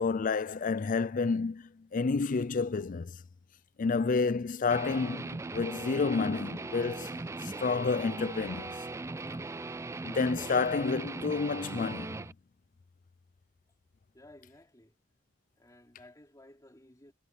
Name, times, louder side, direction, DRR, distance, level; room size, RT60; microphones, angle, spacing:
voice 1, 0.0-3.2 3.8-8.8 10.0-12.2, left 4 dB, 45° left, 0.4 m, -30 dB
Guitar, 4.7-12.3, right 3 dB, 15° right, 0.3 m, -39 dB
voice 2, 14.1-15.0 15.6-17.1, left 1 dB, 20° left, 4.0 m, -56 dB
head